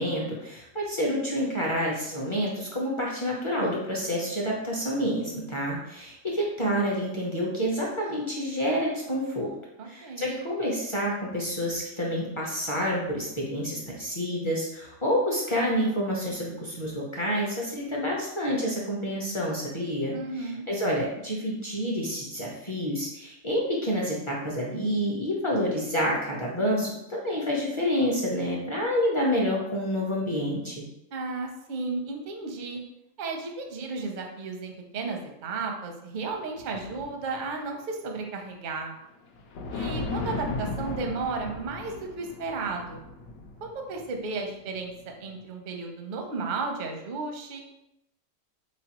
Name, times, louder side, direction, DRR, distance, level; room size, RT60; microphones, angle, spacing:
voice 1, 0.0-9.5 9.8-30.8, equal, 30° left, -4 dB, 0.5 m, -28 dB
voice 2, 9.8-10.3 20.1-20.7 31.1-32.8 33.2-38.9 39.7-43.0 43.6-47.6, right 4 dB, 55° right, 2 dB, 0.5 m, -34 dB
sound 1, 36.3-37.5 39.1-39.2 39.4-45.0 45.3-45.4, left 3 dB, 75° left, 1.1 m, -36 dB
4.3 x 3.1 x 2.9 m, 0.84 s
omnidirectional pair, 1.5 m